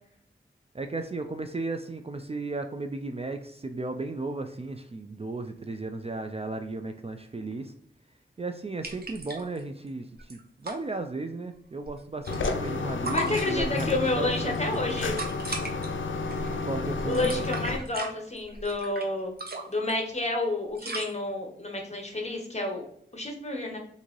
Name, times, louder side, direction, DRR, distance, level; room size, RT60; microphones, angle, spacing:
voice 1, 0.7-7.7 8.4-14.9 16.6-17.3, right 3 dB, 30° right, 6 dB, 0.3 m, -35 dB
sound 1, 8.8-9.6 9.9-10.0 10.2-10.8 11.8-12.8 13.0-13.9 14.4-15.9 16.3-16.6 17.0-19.1 19.4-19.9 20.7-21.1, right 3 dB, 55° right, 0.8 m, -37 dB
sound 2, 12.3-17.8, left 3 dB, 80° left, 0.4 m, -31 dB
voice 2, 13.1-15.1 17.1-19.3 19.7-22.8 23.1-23.8, left 2 dB, 35° left, 2 dB, 1.0 m, -30 dB
3.8 x 2.7 x 3.0 m, 0.66 s
wide cardioid pair, 55°, 20 cm